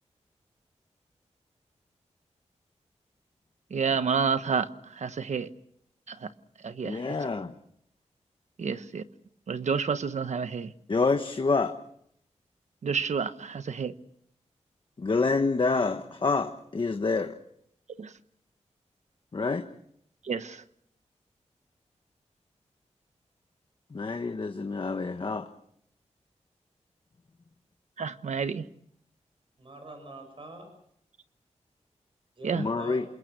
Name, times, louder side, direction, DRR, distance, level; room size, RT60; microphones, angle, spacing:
voice 1, 3.7-5.5 6.1-6.3 6.6-7.0 8.6-9.0 9.5-10.7 12.8-13.9 18.0-18.1 20.3-20.6 28.0-28.6 32.4-32.6, right 6 dB, 75° right, 1.2 m, -29 dB
voice 2, 6.8-7.5 10.9-11.7 15.0-17.3 19.3-19.6 23.9-25.5 32.6-33.0, left 4 dB, 45° left, 1.4 m, -27 dB
voice 3, 24.3-25.1 29.6-30.7 32.4-33.0, right 2 dB, 45° right, 6.5 m, -45 dB
28.0 x 21.0 x 6.2 m
wide cardioid pair, 100°, 12 cm